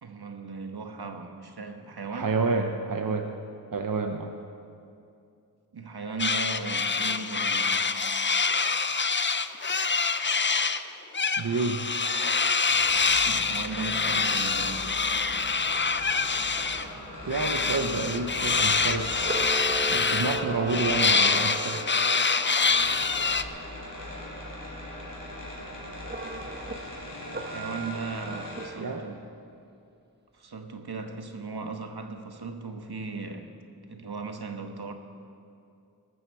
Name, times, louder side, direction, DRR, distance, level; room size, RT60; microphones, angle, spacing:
voice 1, 0.0-2.4 5.7-7.9 13.2-14.9 27.3-29.2 30.3-33.5 33.9-34.9, right 4 dB, 75° right, 5 dB, 1.3 m, -37 dB
voice 2, 2.1-3.3 3.7-4.4 11.4-11.9 17.3-19.2 19.9-22.0 28.8-29.1, right 3 dB, 55° right, 5 dB, 0.9 m, -29 dB
sound 1, 6.2-10.8 11.1-16.9 17.3-23.4, left 4 dB, 30° left, 0.5 m, -26 dB
sound 2, 12.7-28.7, equal, 60° left, 4.2 m, -41 dB
Camera, 19.1-22.4 26.0-26.8 27.3-29.1, right 2 dB, 25° right, 1.2 m, -36 dB
19.0 x 13.5 x 4.7 m, 2.5 s
wide cardioid pair, 60°, 39 cm